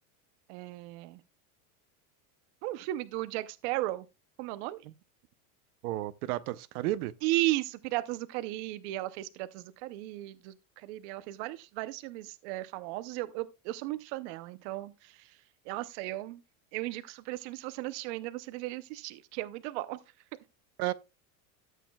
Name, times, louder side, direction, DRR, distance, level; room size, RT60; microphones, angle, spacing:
voice 1, 0.5-1.2 2.6-4.0 4.4-4.8 7.2-15.2 15.7-16.4 16.7-20.0, right 17 dB, 50° right, 0.7 m, -35 dB
voice 2, 5.8-7.1 20.8-20.9, right 16 dB, 80° right, 0.8 m, -32 dB
13.5 x 8.3 x 2.3 m
supercardioid pair, 165°, 43 cm